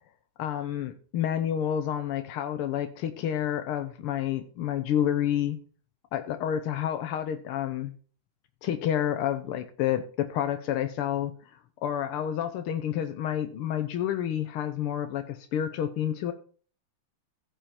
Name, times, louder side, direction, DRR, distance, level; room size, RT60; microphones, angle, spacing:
voice 1, 0.4-5.6 6.1-7.9 8.6-11.3 11.8-16.3, left 10 dB, 85° left, 9 dB, 1.7 m, -29 dB
15.0 x 5.6 x 4.2 m, 0.41 s
omnidirectional pair, 2.3 m